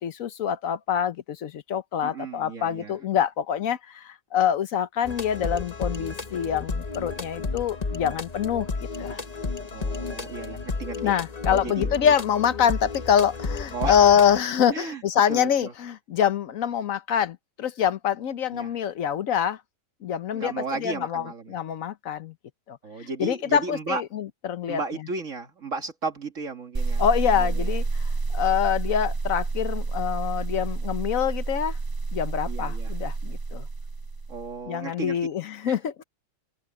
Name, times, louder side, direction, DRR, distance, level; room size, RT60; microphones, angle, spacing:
voice 1, 0.0-8.7 9.0-9.2 11.0-19.6 20.0-22.3 22.7-25.1 27.0-31.8 32.1-33.7 34.7-36.0, left 8 dB, 85° left, 1.3 m, -25 dB
voice 2, 2.0-2.9 9.7-11.1 11.5-11.9 13.7-14.0 14.7-15.0 15.3-15.7 18.5-18.7 20.3-21.6 22.8-24.0 24.7-27.0 32.5-32.9 34.3-35.2 35.6-35.8, right 4 dB, 70° right, 2.3 m, -34 dB
sound 1, 5.0-14.4, left 4 dB, 35° left, 1.1 m, -32 dB
sound 2, 26.7-34.6, right 3 dB, 30° right, 0.4 m, -29 dB
omnidirectional pair, 1.4 m